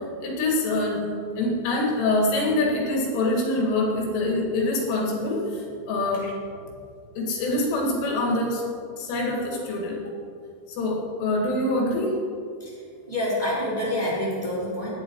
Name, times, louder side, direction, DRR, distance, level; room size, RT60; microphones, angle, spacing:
voice 1, 0.2-1.1 1.4-6.3 7.2-8.6 9.0-10.0 10.7-12.2, left 2 dB, 80° left, -1 dB, 4.9 m, -25 dB
voice 2, 13.0-14.9, left 1 dB, 10° right, -7 dB, 3.4 m, -27 dB
18.0 x 11.5 x 4.9 m, 2.3 s
omnidirectional pair, 5.5 m